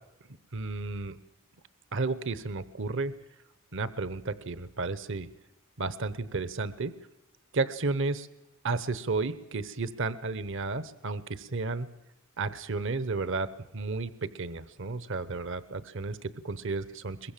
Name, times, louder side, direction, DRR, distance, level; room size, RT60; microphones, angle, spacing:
voice 1, 0.5-1.2 1.9-3.1 3.7-5.3 5.8-6.9 7.5-8.3 8.6-11.9 12.4-17.3, right 3 dB, 65° right, 15 dB, 1.0 m, -32 dB
22.5 x 22.0 x 7.5 m, 0.88 s
head